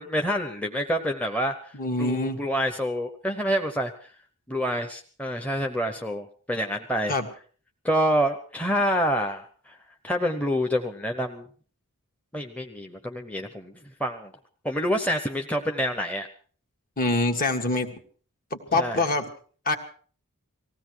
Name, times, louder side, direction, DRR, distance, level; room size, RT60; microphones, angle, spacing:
voice 1, 0.0-1.7 2.0-4.1 4.5-7.2 7.8-9.8 10.0-11.5 12.3-13.7 14.0-14.3 14.6-16.3 18.7-19.0, equal, 5° left, 3 dB, 0.9 m, -27 dB
voice 2, 1.7-2.4 7.1-7.3 17.0-17.9 18.5-19.2 19.7-19.8, left 2 dB, 40° left, 5 dB, 1.8 m, -25 dB
19.5 x 16.0 x 4.7 m, 0.43 s
head